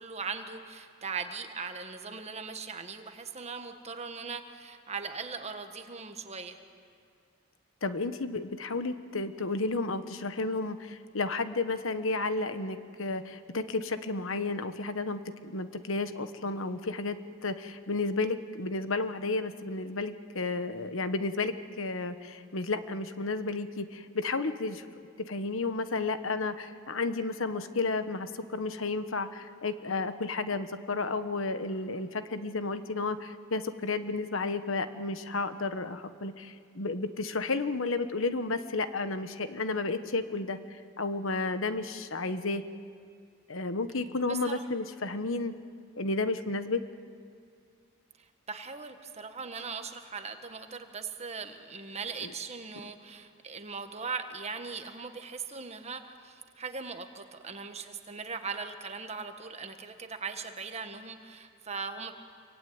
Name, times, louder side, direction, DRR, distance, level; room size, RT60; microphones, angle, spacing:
voice 1, 0.0-6.6 44.3-44.6 48.2-62.1, right 5 dB, 30° right, 7 dB, 1.5 m, -39 dB
voice 2, 7.8-24.9 25.2-42.6 43.5-45.5 46.0-46.8 52.2-52.3, left 3 dB, 75° left, 10 dB, 1.2 m, -32 dB
27.0 x 23.5 x 9.4 m, 2.2 s
head